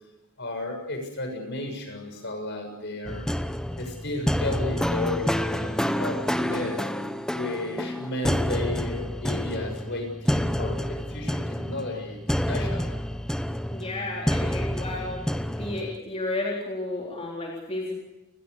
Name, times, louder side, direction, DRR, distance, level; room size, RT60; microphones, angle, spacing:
voice 1, 0.4-3.3 3.8-6.8 7.3-12.2 12.4-12.9, left 2 dB, 50° left, 5 dB, 6.9 m, -33 dB
sound 1, 3.0-16.0, equal, 5° left, 0.9 m, -28 dB
voice 2, 13.7-15.2 15.6-17.9, left 2 dB, 30° left, -3 dB, 4.0 m, -32 dB
30.0 x 21.0 x 6.7 m, 1.0 s
head